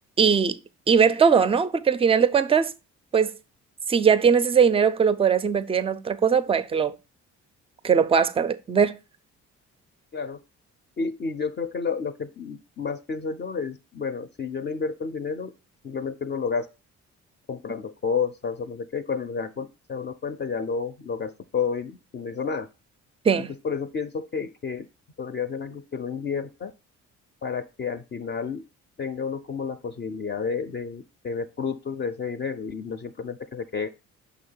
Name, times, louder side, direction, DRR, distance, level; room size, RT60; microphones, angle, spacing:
voice 1, 0.2-0.6 0.9-2.7 3.1-3.3 3.9-7.0 7.8-9.0 23.3-23.5, right 6 dB, 20° right, 0.4 m, -20 dB
voice 2, 11.0-15.5 15.8-16.7 17.5-22.7 23.6-24.9 25.2-26.7 27.4-28.6 29.0-33.9, left 5 dB, 35° left, 0.5 m, -30 dB
6.1 x 2.9 x 5.4 m
cardioid pair, 90°, 30 cm